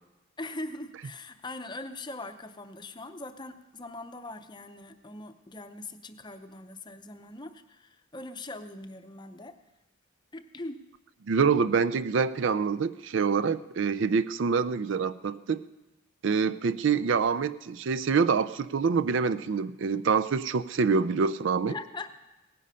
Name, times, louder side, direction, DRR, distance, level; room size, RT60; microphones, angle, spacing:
voice 1, 0.4-9.6 10.3-10.8 21.7-22.1, left 2 dB, 20° left, 8 dB, 0.6 m, -41 dB
voice 2, 11.3-15.6 16.2-21.7, right 5 dB, 65° right, 14 dB, 0.4 m, -26 dB
17.5 x 10.0 x 5.6 m, 1.0 s
head